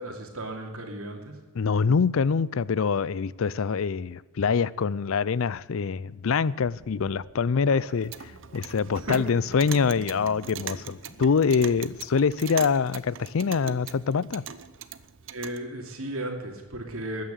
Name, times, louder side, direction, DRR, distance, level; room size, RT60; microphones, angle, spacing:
voice 1, 0.0-1.4 7.7-7.9 9.0-9.2 15.3-17.2, right 1 dB, 80° right, 3 dB, 2.8 m, -35 dB
voice 2, 1.5-8.1 8.5-14.4, left 5 dB, 70° left, 21 dB, 0.5 m, -25 dB
sound 1, 6.6-12.0, left 1 dB, 50° left, 1.6 m, -50 dB
Clock, 7.9-15.6, right 8 dB, 60° right, 0.7 m, -41 dB
13.5 x 9.4 x 8.2 m, 1.3 s
head